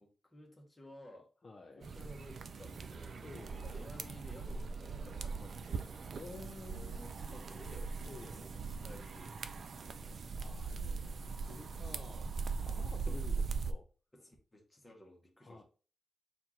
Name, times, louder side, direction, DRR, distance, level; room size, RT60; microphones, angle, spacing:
voice 1, 0.0-1.3 1.8-3.3 3.6-6.0 6.7-7.9 8.4-9.4 9.7-10.2 12.8-13.2 14.1-15.6, left 1 dB, 15° left, 2 dB, 1.0 m, -55 dB
voice 2, 1.4-1.9 3.2-3.7 6.1-7.8 8.0-8.5 10.4-13.9 15.4-15.6, left 3 dB, 35° left, 3 dB, 0.4 m, -52 dB
sound 1, 1.8-13.7, right 4 dB, 55° right, 0.4 m, -40 dB
4.4 x 2.5 x 4.3 m, 0.38 s
wide cardioid pair, 145°, 0 cm